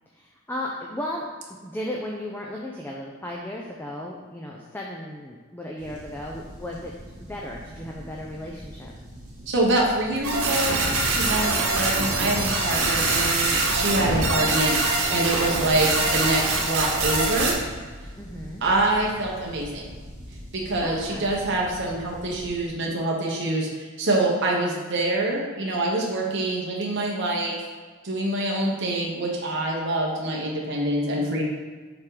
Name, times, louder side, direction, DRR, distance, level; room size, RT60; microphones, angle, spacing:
voice 1, 0.1-1.3 1.6-6.9 7.3-8.9 18.2-18.6 20.8-21.4 31.2-31.4, left 1 dB, 10° left, -2 dB, 0.5 m, -35 dB
sound 1, 5.8-22.7, equal, 35° right, 1.9 m, -43 dB
voice 2, 9.5-10.8 11.1-17.6 18.6-19.9 20.5-27.6 28.0-31.4, right 2 dB, 55° right, -3 dB, 1.2 m, -25 dB
sound 2, 10.2-17.5, right 3 dB, 85° right, 1.6 m, -24 dB
7.5 x 3.8 x 4.9 m, 1.5 s
head